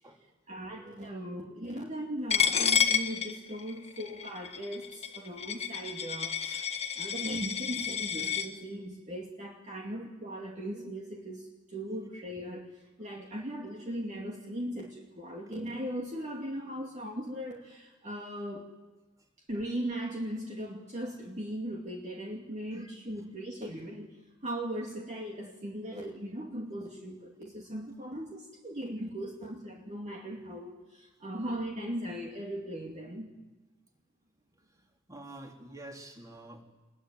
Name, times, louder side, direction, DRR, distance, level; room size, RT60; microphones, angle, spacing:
voice 1, 0.5-6.7 7.0-18.7 19.5-24.2 24.4-33.4, equal, 35° right, 0 dB, 2.4 m, -38 dB
Coin (dropping), 2.3-8.5, left 7 dB, 30° left, 1.6 m, -30 dB
voice 2, 34.7-36.6, right 1 dB, 20° right, 2 dB, 3.5 m, -48 dB
27.0 x 21.5 x 9.3 m, 1.2 s
head